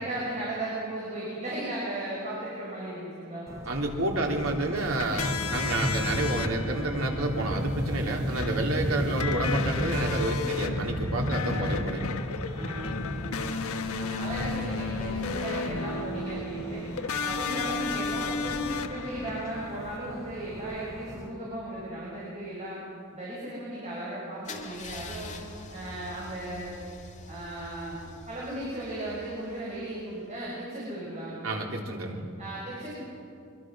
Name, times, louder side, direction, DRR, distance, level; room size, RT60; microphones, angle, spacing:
voice 1, 0.0-3.5 8.8-9.1 11.4-11.9 12.5-13.5 13.9-16.8 17.2-22.8 23.1-25.3 25.7-26.7 27.3-31.4 32.4-32.9, right 1 dB, 35° right, -6 dB, 6.3 m, -36 dB
sound 1, 3.5-21.3, equal, 15° right, 3.1 m, -35 dB
voice 2, 3.7-12.1 31.4-32.3, right 2 dB, 75° right, 1 dB, 3.4 m, -29 dB
sound 2, 4.8-20.0, left 4 dB, 80° left, 1.2 m, -34 dB
Car / Engine starting / Idling, 24.4-30.3, left 2 dB, 35° left, 2.3 m, -45 dB
24.5 x 23.5 x 6.3 m, 2.5 s
head